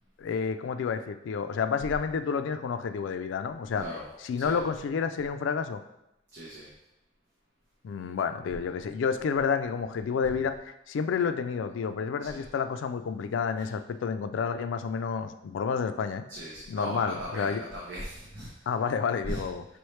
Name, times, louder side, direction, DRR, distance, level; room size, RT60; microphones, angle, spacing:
voice 1, 0.2-3.9 4.2-5.8 7.8-16.2 16.7-17.6 18.7-19.6, left 6 dB, 90° left, 10 dB, 0.3 m, -30 dB
voice 2, 6.3-6.7 12.3-12.4 16.3-18.5 19.3-19.4, equal, 70° right, -5 dB, 0.9 m, -37 dB
5.4 x 3.1 x 3.2 m, 0.88 s
head